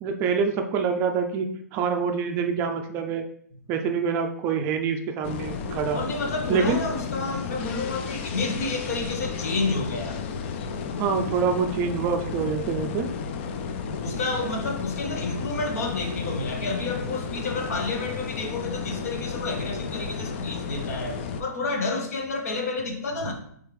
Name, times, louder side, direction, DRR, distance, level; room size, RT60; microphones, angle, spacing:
voice 1, 0.0-3.2 3.7-6.0 6.5-6.8 11.0-13.1, right 6 dB, 25° right, 0.4 m, -26 dB
sound 1, 5.2-21.4, left 5 dB, 40° left, 0.4 m, -33 dB
voice 2, 5.9-10.2 13.8-23.3, left 3 dB, 60° left, 1.0 m, -30 dB
4.5 x 3.5 x 3.2 m
hypercardioid pair, 135°, 9 cm